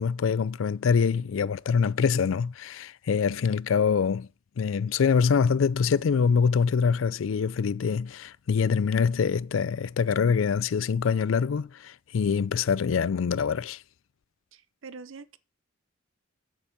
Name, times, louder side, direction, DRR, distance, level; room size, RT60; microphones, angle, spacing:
voice 1, 0.0-4.3 4.6-13.8, left 6 dB, 75° left, 0.4 m, -25 dB
voice 2, 14.5-15.4, right 4 dB, 75° right, 0.7 m, -44 dB
8.7 x 7.2 x 5.8 m
head